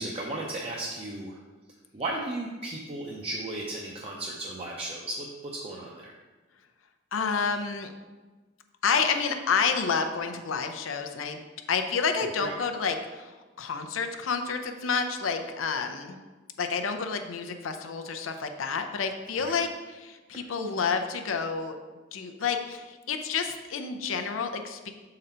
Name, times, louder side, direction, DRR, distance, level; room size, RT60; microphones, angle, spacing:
voice 1, 0.0-1.4 1.9-6.1 12.2-12.5 19.4-19.5, right 2 dB, 30° right, -3 dB, 0.6 m, -35 dB
voice 2, 7.1-7.9 8.8-11.4 11.7-16.2 16.6-19.7 20.0-21.8 22.1-24.9, left 5 dB, 90° left, 6 dB, 0.5 m, -29 dB
6.6 x 3.9 x 4.3 m, 1.3 s
head